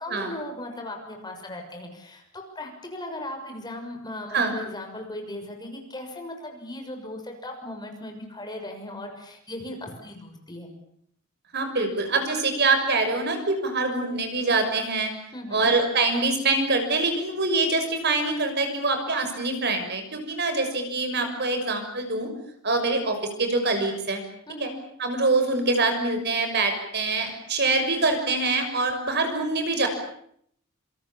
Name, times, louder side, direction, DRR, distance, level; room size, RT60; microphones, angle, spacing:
voice 1, 0.0-10.7 15.3-15.7 24.5-24.8, left 1 dB, 20° left, 3 dB, 6.4 m, -37 dB
voice 2, 11.5-15.1 15.5-22.3 22.6-24.2 24.6-24.7 25.0-29.9, right 3 dB, 50° right, 6 dB, 6.2 m, -24 dB
28.0 x 27.5 x 7.3 m, 0.68 s
head